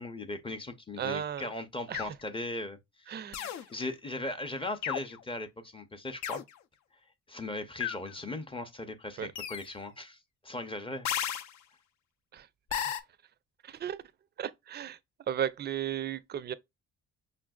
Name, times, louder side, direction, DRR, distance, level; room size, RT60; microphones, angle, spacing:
voice 1, 0.0-3.1 3.7-6.4 7.3-11.1, left 2 dB, 20° left, 0.5 m, -38 dB
voice 2, 1.0-1.5 1.9-2.1 3.1-3.5 9.2-9.3 12.3-12.9 13.6-14.0 14.4-15.0 15.3-16.5, right 9 dB, 35° right, 0.4 m, -35 dB
sound 1, 1.9-2.2 3.3-3.6 4.8-5.2 6.2-6.5 7.8-8.1 9.4-9.7 11.1-11.5 12.7-13.0, left 10 dB, 65° left, 0.5 m, -33 dB
5.5 x 2.5 x 2.2 m
cardioid pair, 90°, 30 cm